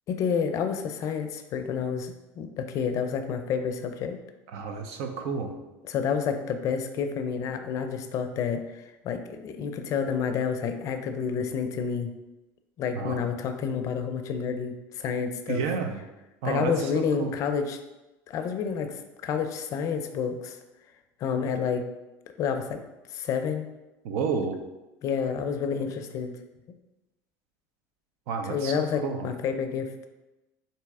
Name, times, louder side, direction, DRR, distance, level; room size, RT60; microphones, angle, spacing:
voice 1, 0.1-4.2 5.8-12.1 12.8-15.6 16.4-17.8 18.3-20.6 21.2-21.9 22.4-22.8 23.1-23.7 25.0-26.3 28.5-29.9, left 6 dB, 50° left, 7 dB, 0.4 m, -29 dB
voice 2, 4.5-5.5 12.9-13.3 15.5-16.0 16.4-17.3 24.0-24.6 28.3-29.3, right 5 dB, 75° right, 6 dB, 0.5 m, -31 dB
4.1 x 2.7 x 3.5 m, 1.0 s
supercardioid pair, 115°, 7 cm